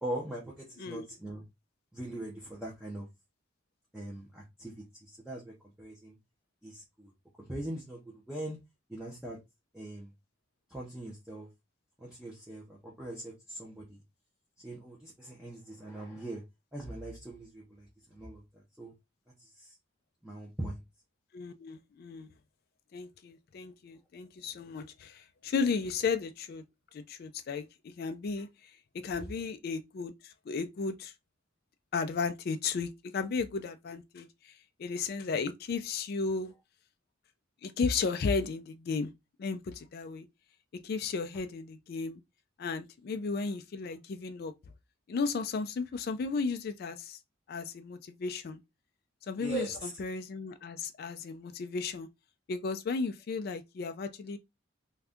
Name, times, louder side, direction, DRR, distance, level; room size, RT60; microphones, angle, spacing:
voice 1, 0.0-1.4 1.9-3.1 3.9-6.2 6.6-7.1 7.4-8.6 8.9-9.4 9.7-10.1 10.7-11.5 12.0-14.0 14.6-16.4 16.7-18.9 19.4-19.7 20.2-20.8 49.4-49.9, right 1 dB, 5° right, 0.6 m, -41 dB
voice 2, 21.3-22.3 22.9-26.6 26.9-31.1 31.9-36.5 37.6-39.1 39.4-40.3 40.8-42.2 42.6-44.5 45.1-47.2 47.5-48.6 49.3-52.1 52.5-54.4, left 4 dB, 50° left, 0.3 m, -34 dB
2.6 x 2.3 x 3.4 m
head